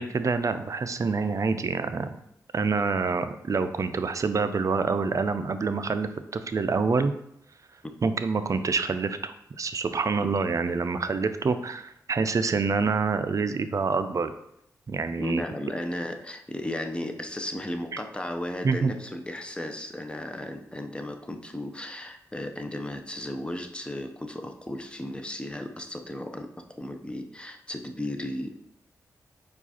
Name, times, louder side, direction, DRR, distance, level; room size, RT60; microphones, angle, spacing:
voice 1, 0.0-2.1 2.5-7.1 8.0-14.3 14.9-15.4 18.6-18.9, right 4 dB, 45° right, 10 dB, 0.4 m, -27 dB
voice 2, 15.2-28.5, left 1 dB, 15° left, 6 dB, 0.6 m, -35 dB
4.6 x 2.4 x 4.2 m, 0.75 s
supercardioid pair, 45°, 7 cm